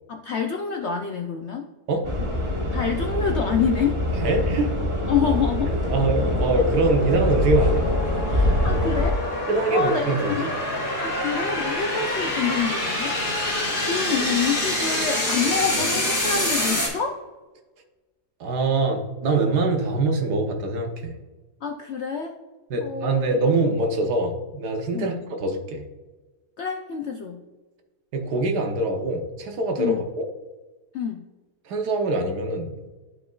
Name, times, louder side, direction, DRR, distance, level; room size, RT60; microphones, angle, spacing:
voice 1, 0.1-1.7 2.7-4.0 5.1-5.7 8.3-10.6 11.0-13.2 13.9-17.2 21.6-22.3 22.8-23.2 24.9-25.2 26.6-27.4 29.8-30.1 30.9-31.2, left 6 dB, 70° left, 3 dB, 0.6 m, -27 dB
sound 1, 2.0-9.1, left 1 dB, 20° right, 1.1 m, -24 dB
sound 2, 3.7-16.9, left 1 dB, 35° left, 2.8 m, -27 dB
voice 2, 4.2-4.7 5.9-7.9 9.5-10.5 18.4-21.2 22.7-25.8 28.1-30.3 31.6-32.7, right 2 dB, 80° right, 4 dB, 1.5 m, -24 dB
11.5 x 5.1 x 2.4 m, 1.2 s
omnidirectional pair, 1.7 m